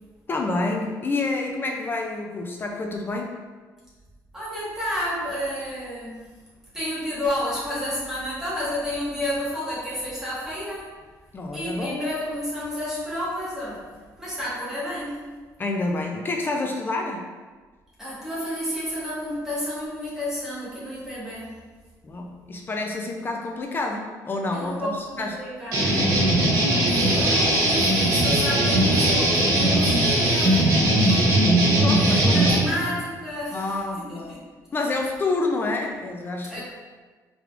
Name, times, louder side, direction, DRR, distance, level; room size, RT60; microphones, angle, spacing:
voice 1, 0.3-3.4 11.3-12.0 15.6-17.3 22.0-25.3 25.9-26.1 31.8-32.6 33.5-34.4 34.7-36.6, left 2 dB, 30° left, 2 dB, 0.4 m, -28 dB
voice 2, 4.3-6.2 6.7-11.0 11.5-15.3 18.0-21.6 24.5-26.0 26.9-31.2 31.9-34.4 34.7-34.8 36.4-36.6, left 1 dB, 5° right, -9 dB, 1.4 m, -31 dB
sound 1, 25.7-32.6, right 1 dB, 60° right, 1.5 m, -19 dB
4.7 x 3.4 x 2.4 m, 1.4 s
cardioid pair, 130°, 7 cm